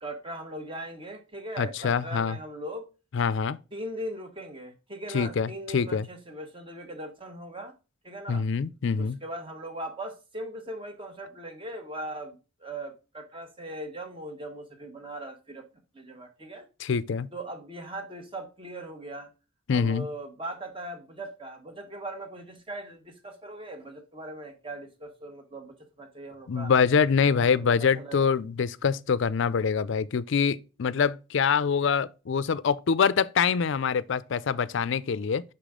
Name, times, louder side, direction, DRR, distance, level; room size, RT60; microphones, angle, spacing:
voice 1, 0.0-2.9 3.7-7.7 8.0-8.4 9.0-15.6 15.9-16.7 17.3-19.3 19.7-26.7 27.3-27.6 28.0-28.3, right 1 dB, 25° right, 1.2 m, -39 dB
voice 2, 1.6-2.4 3.1-3.6 5.1-6.1 8.3-9.2 16.8-17.3 19.7-20.1 26.5-35.4, left 6 dB, 60° left, 0.4 m, -25 dB
5.9 x 5.0 x 3.7 m
head